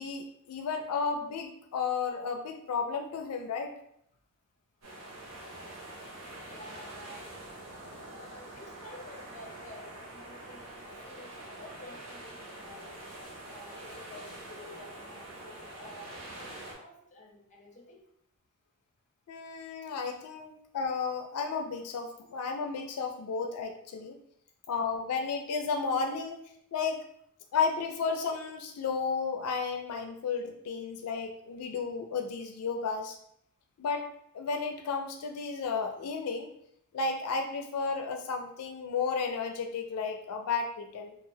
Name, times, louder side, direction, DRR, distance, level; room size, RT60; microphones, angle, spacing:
voice 1, 0.0-3.7 19.3-24.2 24.7-26.4 26.7-27.0 27.5-33.2 33.8-34.1 34.3-36.5 36.9-41.1, left 5 dB, 90° left, 5 dB, 0.4 m, -33 dB
sound 1, 4.8-16.7, right 1 dB, 70° right, 0.9 m, -45 dB
voice 2, 6.5-7.4 8.1-13.0 13.5-18.0, left 1 dB, 35° left, 0 dB, 0.6 m, -51 dB
3.0 x 2.4 x 2.6 m, 0.71 s
head